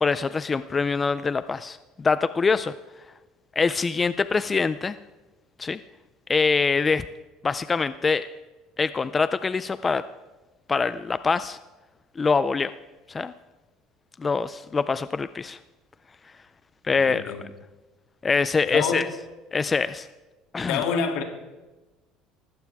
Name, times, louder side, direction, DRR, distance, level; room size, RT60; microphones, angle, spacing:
voice 1, 0.0-2.7 3.6-5.0 5.6-5.8 6.3-7.0 7.4-8.3 8.8-10.0 10.7-11.6 12.2-12.7 13.1-13.3 14.2-15.6 16.8-17.3 18.2-19.1 19.5-20.1 20.5-20.8, left 4 dB, 20° left, 14 dB, 0.4 m, -24 dB
voice 2, 16.9-17.4 18.7-19.1 20.7-21.2, left 6 dB, 75° left, 4 dB, 2.6 m, -27 dB
19.5 x 15.5 x 3.5 m, 1.1 s
cardioid pair, 140°, 0 cm